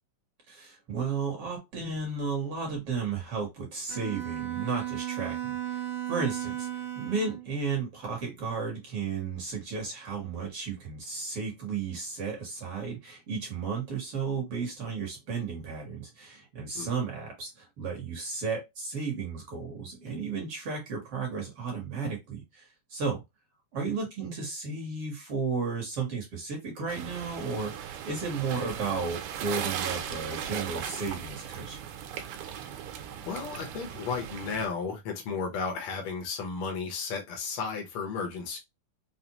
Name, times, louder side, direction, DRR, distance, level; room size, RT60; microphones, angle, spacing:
voice 1, 0.5-5.8 6.1-23.2 23.7-31.8, right 5 dB, 55° right, 1.8 m, -34 dB
Bowed string instrument, 3.9-7.5, right 12 dB, 70° right, 2.1 m, -35 dB
sound 1, 26.9-34.7, right 9 dB, 90° right, 2.4 m, -37 dB
voice 2, 33.3-38.6, left 5 dB, 75° left, 1.2 m, -34 dB
5.6 x 2.0 x 2.9 m
omnidirectional pair, 3.8 m